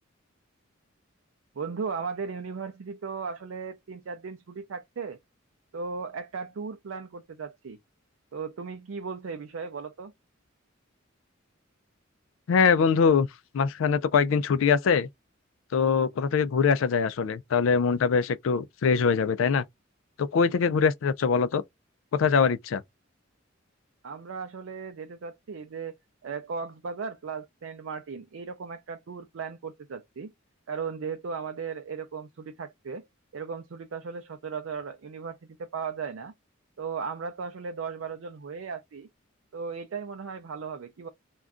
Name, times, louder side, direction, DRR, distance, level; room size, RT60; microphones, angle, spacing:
voice 1, 1.6-5.2 5.7-7.8 8.3-10.1 24.0-25.9 26.2-30.3 30.7-33.1 33.3-36.3 36.8-39.1 39.5-41.1, right 5 dB, 75° right, 0.4 m, -36 dB
voice 2, 12.5-13.3 13.5-15.1 15.7-19.6 20.2-21.6 22.1-22.8, left 6 dB, 75° left, 0.4 m, -23 dB
2.5 x 2.2 x 3.5 m
head